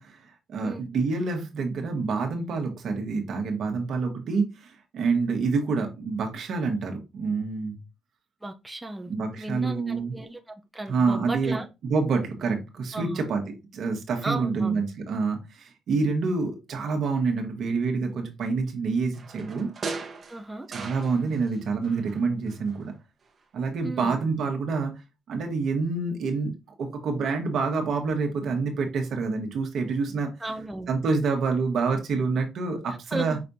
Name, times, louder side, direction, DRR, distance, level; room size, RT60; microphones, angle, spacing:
voice 1, 0.0-7.8 9.1-10.1 10.9-13.4 13.7-19.7 20.7-22.9 23.5-24.9 25.3-26.5 26.8-30.3 30.9-33.4, right 4 dB, 70° right, 1.4 m, -27 dB
voice 2, 8.4-11.7 12.9-13.2 14.2-14.8 20.3-20.7 23.8-24.2 30.4-30.9 33.1-33.4, right 2 dB, 10° right, 0.6 m, -35 dB
sound 1, 19.1-21.6 21.8-22.9 23.3-23.4, right 4 dB, 45° right, 1.1 m, -39 dB
5.9 x 3.2 x 2.7 m
cardioid pair, 80°, 0 cm